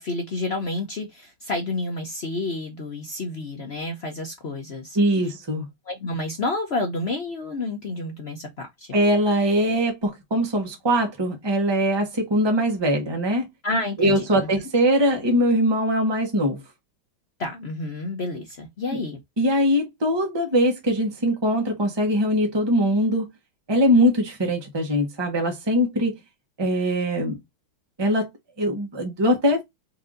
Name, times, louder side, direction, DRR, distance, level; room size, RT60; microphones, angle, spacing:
voice 1, 0.0-5.0 5.9-8.9 13.6-14.5 17.4-19.2, left 2 dB, 65° left, 0.6 m, -30 dB
voice 2, 4.9-5.6 8.9-13.5 14.0-16.6 18.9-19.0 19.4-23.3 23.7-26.2 26.6-27.4 28.0-28.3 28.6-29.6, equal, 15° right, 0.9 m, -22 dB
4.5 x 2.7 x 3.7 m
omnidirectional pair, 2.2 m